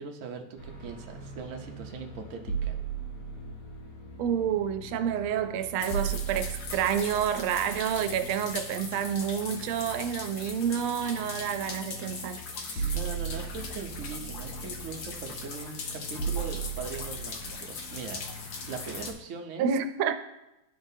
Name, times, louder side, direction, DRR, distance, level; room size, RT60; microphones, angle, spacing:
voice 1, 0.0-2.8 12.8-18.3 18.7-19.7, right 5 dB, 70° right, 0.7 m, -40 dB
sound 1, 0.6-19.1, right 5 dB, 80° left, 2.5 m, -38 dB
voice 2, 4.2-13.0 19.6-20.1, right 8 dB, 85° right, 1.4 m, -29 dB
sound 2, 5.8-19.1, left 4 dB, 60° left, 1.1 m, -40 dB
11.5 x 3.8 x 2.7 m
omnidirectional pair, 2.3 m